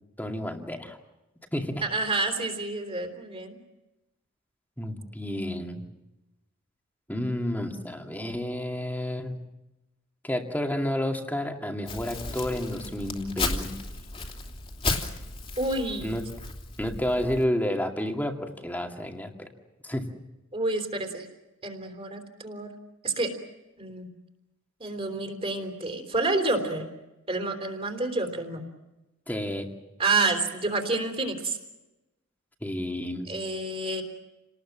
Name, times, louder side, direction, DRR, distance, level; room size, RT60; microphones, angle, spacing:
voice 1, 0.2-1.0 1.5-1.8 4.8-5.8 7.1-9.3 10.2-14.0 16.0-16.2 16.8-19.5 19.8-20.1 29.3-29.7 32.6-33.3, left 1 dB, 10° left, 3 dB, 2.3 m, -30 dB
voice 2, 1.8-3.6 15.6-16.2 20.5-21.3 21.6-22.7 23.0-23.3 23.8-24.1 24.8-26.9 27.3-28.7 30.0-31.6 33.3-34.0, right 3 dB, 30° right, 4 dB, 3.5 m, -29 dB
Crumpling crinkling, 11.9-17.5, left 3 dB, 25° left, 3.0 m, -34 dB
29.5 x 19.5 x 7.5 m, 1.0 s
head